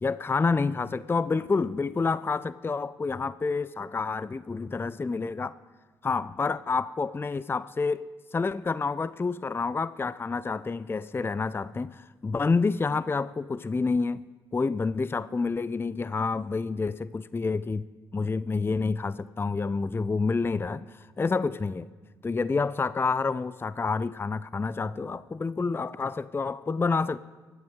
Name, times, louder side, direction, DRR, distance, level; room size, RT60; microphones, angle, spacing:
voice 1, 0.0-5.5 6.0-8.1 8.3-17.8 18.1-21.9 22.2-27.2, left 4 dB, 20° left, 0.5 m, -28 dB
24.0 x 11.0 x 3.7 m
hypercardioid pair, 45°, 11 cm